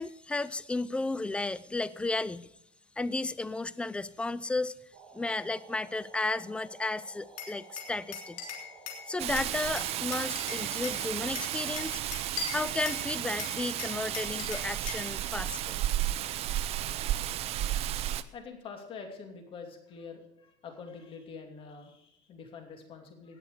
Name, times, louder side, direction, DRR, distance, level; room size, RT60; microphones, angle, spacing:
voice 1, 0.0-2.5 3.0-4.8 5.1-8.4 9.1-12.0 12.5-15.8, left 2 dB, 5° left, 18 dB, 0.4 m, -33 dB
sound 1, 4.9-12.0, right 5 dB, 60° right, 5.0 m, -54 dB
Glass, 7.4-9.0 9.4-11.0 11.4-13.1 13.4-15.1, left 5 dB, 60° left, 3.4 m, -40 dB
Rain, 9.2-18.2, right 12 dB, 40° right, 0.7 m, -33 dB
voice 2, 18.3-23.4, left 5 dB, 35° left, 4 dB, 2.7 m, -46 dB
17.5 x 6.8 x 6.7 m, 0.78 s
cardioid pair, 140°, 15 cm